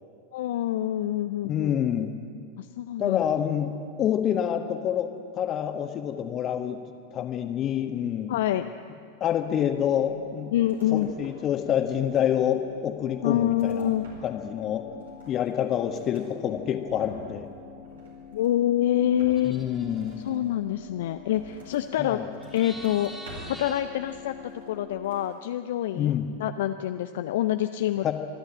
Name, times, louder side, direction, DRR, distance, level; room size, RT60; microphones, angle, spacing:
voice 1, 0.3-1.7 2.6-3.5 8.3-8.7 10.5-11.1 13.2-14.1 18.3-19.7 20.2-22.2 22.5-23.1 23.5-24.3 24.7-26.1 26.4-28.1, left 12 dB, 55° left, 9 dB, 0.5 m, -26 dB
voice 2, 1.4-2.1 3.0-3.7 4.0-6.8 7.1-8.3 9.2-10.5 10.9-13.9 14.2-14.9 15.3-17.5 19.4-20.2 22.0-22.3 25.9-26.3 28.0-28.1, left 10 dB, 30° left, 6 dB, 1.6 m, -27 dB
sound 1, 9.4-25.2, left 6 dB, 85° right, 4.4 m, -47 dB
sound 2, 10.6-11.5 11.8-12.6 13.1-14.6 14.8-16.3 16.7-17.4 17.7-18.7 19.1-21.9 22.3-23.7 24.0-24.8 25.0-25.4, right 2 dB, 65° right, 4.4 m, -50 dB
sound 3, 19.3-20.2 22.4-23.8, equal, 5° right, 2.8 m, -44 dB
27.0 x 11.5 x 8.9 m, 2.3 s
figure-of-eight pair, 90°, 0 cm